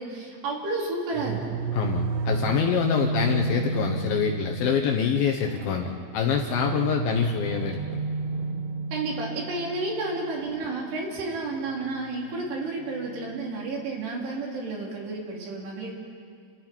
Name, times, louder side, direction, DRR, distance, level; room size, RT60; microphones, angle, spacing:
voice 1, 0.0-1.5 8.9-15.9, right 2 dB, 70° right, -2 dB, 5.4 m, -31 dB
sound 1, 1.1-13.9, right 4 dB, 90° right, 3.3 m, -32 dB
voice 2, 1.7-8.0, left 7 dB, 70° left, 2 dB, 2.4 m, -26 dB
29.0 x 27.0 x 4.5 m, 2.2 s
omnidirectional pair, 5.1 m